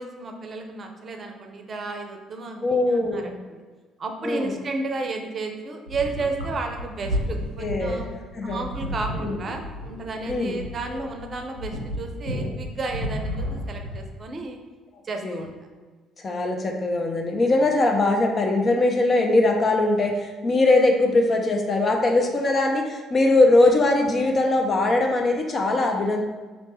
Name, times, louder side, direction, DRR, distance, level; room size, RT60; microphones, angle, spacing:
voice 1, 0.0-2.7 3.1-3.6 4.0-8.1 8.4-14.6 15.0-15.5, right 3 dB, 40° right, 3 dB, 0.6 m, -32 dB
voice 2, 2.6-3.4 4.2-4.5 7.6-8.1 8.3-8.6 9.1-9.4 10.3-10.6 10.9-11.0 15.2-15.5 16.2-26.2, left 2 dB, 40° left, 2 dB, 0.6 m, -21 dB
sound 1, 5.9-14.1, equal, 90° right, 0.6 m, -32 dB
3.2 x 3.0 x 4.3 m, 1.4 s
figure-of-eight pair, 50°, 0 cm